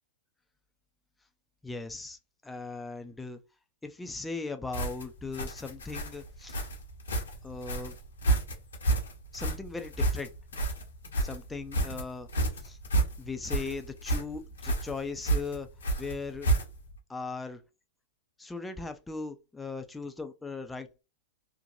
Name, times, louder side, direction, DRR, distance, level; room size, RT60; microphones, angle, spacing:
voice 1, 1.6-3.4 3.8-6.6 7.4-8.0 9.3-10.3 11.2-12.3 12.6-12.8 13.2-15.7 16.0-16.5 17.1-17.6 18.4-21.0, left 4 dB, 10° left, 0.4 m, -38 dB
sound 1, 4.7-17.0, right 2 dB, 80° left, 0.9 m, -30 dB
2.8 x 2.2 x 2.6 m
hypercardioid pair, 100°, 0 cm